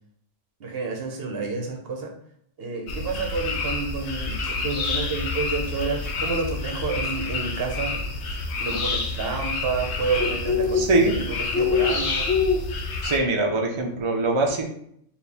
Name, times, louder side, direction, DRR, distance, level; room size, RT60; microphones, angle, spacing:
voice 1, 0.6-2.1 2.6-8.0 8.6-11.1 11.5-12.3, right 4 dB, 60° right, 1 dB, 0.9 m, -29 dB
sound 1, 2.9-13.2, left 4 dB, 70° left, 0.9 m, -27 dB
voice 2, 10.7-11.2 13.0-14.6, right 2 dB, 40° right, 1 dB, 0.4 m, -22 dB
4.3 x 2.5 x 3.4 m, 0.68 s
omnidirectional pair, 1.2 m